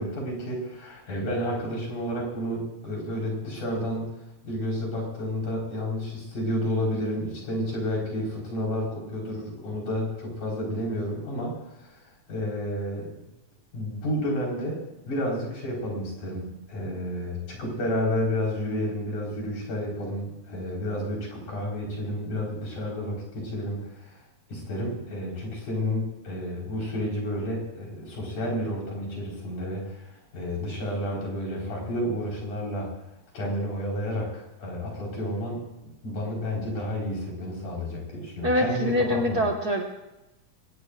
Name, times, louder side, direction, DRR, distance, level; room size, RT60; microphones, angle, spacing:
voice 1, 0.0-4.1 4.4-12.0 12.3-13.3 13.7-24.2 24.5-33.0 33.3-39.5, equal, 85° left, -2 dB, 6.2 m, -31 dB
voice 2, 38.4-39.8, equal, 40° right, 1 dB, 1.5 m, -24 dB
23.0 x 18.5 x 2.5 m, 0.96 s
omnidirectional pair, 3.4 m